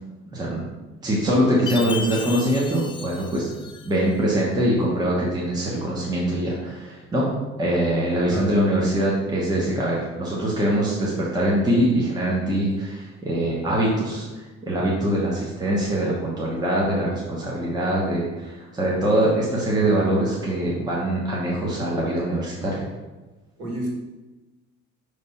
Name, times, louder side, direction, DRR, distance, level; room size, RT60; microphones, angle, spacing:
voice 1, 0.3-0.7 1.0-3.5 3.8-7.3 7.6-22.8, right 1 dB, 15° right, -5 dB, 1.0 m, -23 dB
Chime, 1.7-4.1, left 5 dB, 20° left, 0.3 m, -35 dB
voice 2, 14.8-15.2 23.6-23.9, equal, 55° right, -2 dB, 2.1 m, -32 dB
5.3 x 3.4 x 5.5 m, 1.2 s
cardioid pair, 160°, 29 cm